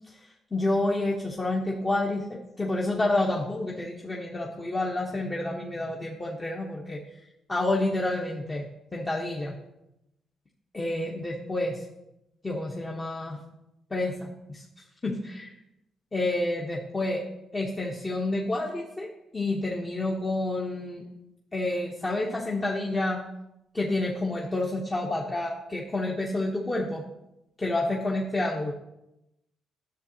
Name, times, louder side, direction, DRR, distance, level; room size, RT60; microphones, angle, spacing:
voice 1, 0.5-2.3 2.6-7.0 7.5-8.6 8.9-9.5 10.7-11.8 12.4-13.4 13.9-14.6 15.0-15.5 16.1-17.2 17.5-21.0 21.5-23.2 23.7-27.0 27.6-28.7, left 2 dB, 20° left, -2 dB, 0.9 m, -29 dB
10.0 x 6.6 x 2.8 m, 0.88 s
cardioid pair, 90°, 0 cm